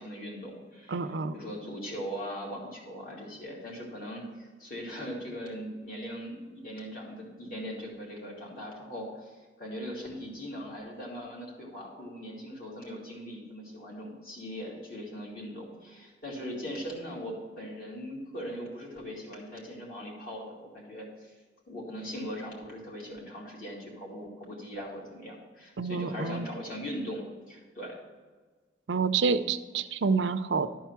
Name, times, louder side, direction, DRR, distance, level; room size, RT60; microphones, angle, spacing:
voice 1, 0.0-21.3 21.7-28.0, equal, 50° left, -3 dB, 2.8 m, -40 dB
voice 2, 0.9-1.3 25.8-26.5 28.9-30.7, right 5 dB, 80° right, 11 dB, 0.5 m, -28 dB
12.0 x 4.6 x 5.9 m, 1.4 s
head